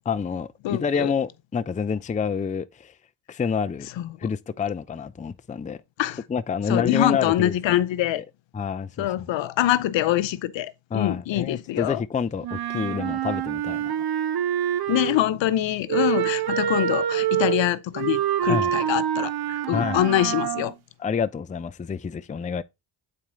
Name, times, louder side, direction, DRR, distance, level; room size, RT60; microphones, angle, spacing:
voice 1, 0.1-2.9 3.3-3.9 4.2-5.8 6.3-7.6 8.2-8.3 8.5-9.3 10.9-13.9 18.5-18.7 19.7-20.0 21.0-22.6, left 6 dB, 15° left, 0.5 m, -28 dB
voice 2, 0.6-1.1 4.0-4.2 6.0-6.2 6.7-8.2 9.0-12.0 14.9-20.7, left 13 dB, 65° left, 0.7 m, -24 dB
Wind instrument woodwind instrument, 12.4-15.3 15.9-20.7, right 10 dB, 50° right, 0.7 m, -26 dB
7.6 x 4.2 x 3.7 m
supercardioid pair, 60°, 49 cm